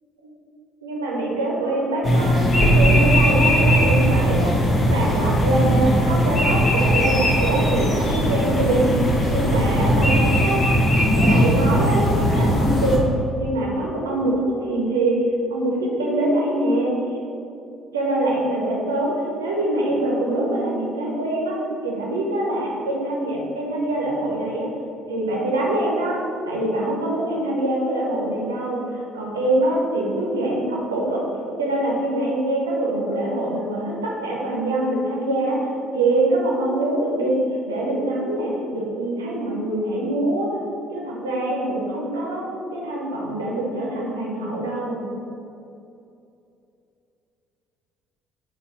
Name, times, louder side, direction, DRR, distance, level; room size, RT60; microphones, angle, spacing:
voice 1, 0.8-4.5 4.9-10.7 11.2-15.2 15.5-16.9 17.9-19.1 19.4-21.6 21.8-24.7 25.1-31.2 31.6-35.7 35.9-37.4 37.7-40.5 40.9-45.0, right 1 dB, 75° right, -3 dB, 0.7 m, -24 dB
sound 1, 2.0-13.0, equal, 35° left, 0.8 m, -19 dB
3.9 x 3.0 x 4.1 m, 2.7 s
figure-of-eight pair, 50°, 0 cm